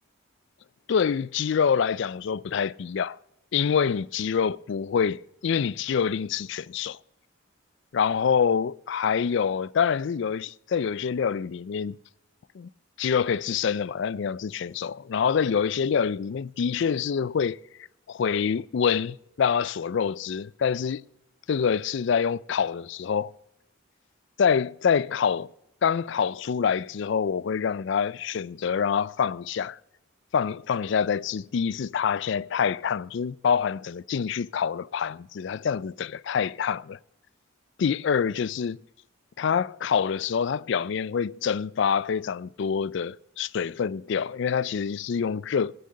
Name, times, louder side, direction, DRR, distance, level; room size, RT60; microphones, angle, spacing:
voice 1, 0.9-3.2 3.5-7.0 7.9-12.0 12.5-12.7 13.0-17.6 18.1-21.0 21.5-23.3 24.4-25.5 25.8-29.8 30.3-37.0 37.8-38.8 39.4-45.7, left 7 dB, 55° left, 0.3 m, -26 dB
16.5 x 6.5 x 6.4 m
head